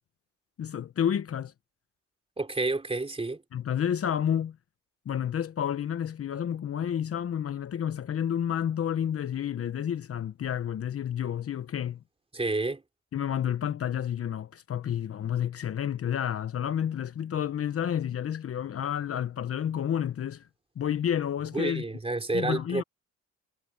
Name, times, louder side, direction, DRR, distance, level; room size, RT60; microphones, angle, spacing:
voice 1, 0.6-1.5 3.5-4.6 5.1-12.0 13.1-20.5 20.8-21.8 22.3-22.8, left 9 dB, 50° left, 1.0 m, -30 dB
voice 2, 2.4-3.4 12.3-12.8 21.5-22.8, right 2 dB, 20° right, 3.2 m, -29 dB
cardioid pair, 90°, 30 cm